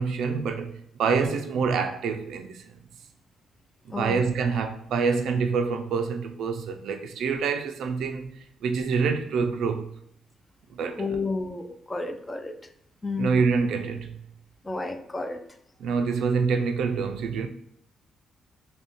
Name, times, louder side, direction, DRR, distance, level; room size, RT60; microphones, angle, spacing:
voice 1, 0.0-2.6 4.0-8.3 8.6-9.9 10.7-11.1 13.2-14.2 15.8-17.5, right 5 dB, 75° right, 0.3 m, -26 dB
voice 2, 3.9-4.2 11.0-12.5 13.0-13.4 14.6-15.4, left 3 dB, 20° left, 0.4 m, -31 dB
2.6 x 2.1 x 3.5 m
cardioid pair, 90°, 0 cm